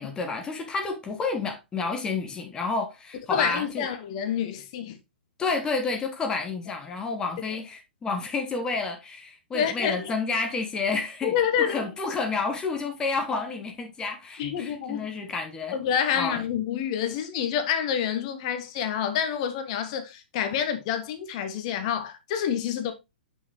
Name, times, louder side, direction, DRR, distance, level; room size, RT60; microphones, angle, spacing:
voice 1, 0.0-3.9 5.4-15.8 16.1-16.4, left 4 dB, 15° left, 1.0 m, -30 dB
voice 2, 3.3-5.0 9.5-9.9 11.2-11.8 14.4-15.1 15.7-22.9, left 8 dB, 35° left, 1.2 m, -27 dB
7.6 x 5.9 x 3.0 m
figure-of-eight pair, 115°, 6 cm